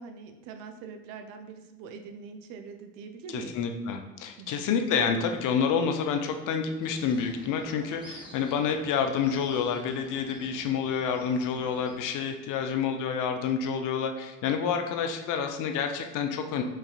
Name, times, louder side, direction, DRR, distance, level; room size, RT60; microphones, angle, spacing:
voice 1, 0.0-3.5 4.4-4.6, right 5 dB, 65° right, 6 dB, 0.5 m, -43 dB
voice 2, 3.3-16.6, left 6 dB, 55° left, 5 dB, 0.5 m, -28 dB
sound 1, 6.8-12.0, right 1 dB, 10° right, 1.0 m, -49 dB
5.2 x 2.4 x 2.3 m, 1.1 s
figure-of-eight pair, 45°, 38 cm